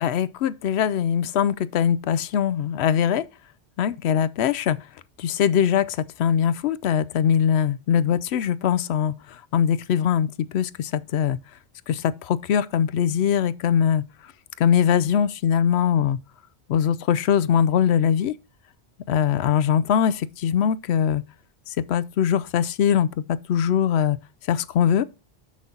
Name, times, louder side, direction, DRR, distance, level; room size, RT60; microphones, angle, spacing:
voice 1, 0.0-3.3 3.8-4.8 5.2-9.1 9.5-11.4 11.9-14.0 14.6-16.2 16.7-18.3 19.1-21.2 21.7-24.2 24.5-25.1, left 8 dB, 75° left, 0.8 m, -22 dB
7.1 x 6.3 x 3.8 m
omnidirectional pair, 1.1 m